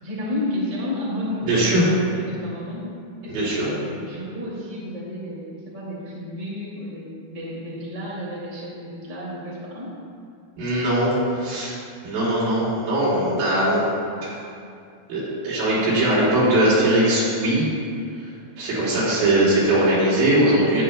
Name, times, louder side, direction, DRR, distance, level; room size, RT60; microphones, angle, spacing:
voice 1, 0.0-2.9 3.2-10.0, left 1 dB, 20° right, -7 dB, 1.4 m, -31 dB
voice 2, 1.4-1.8 3.3-3.7 10.6-11.8 12.0-13.8 15.1-17.7 18.6-20.8, right 1 dB, 85° right, -8 dB, 4.6 m, -20 dB
13.0 x 9.3 x 2.2 m, 2.4 s
omnidirectional pair, 4.6 m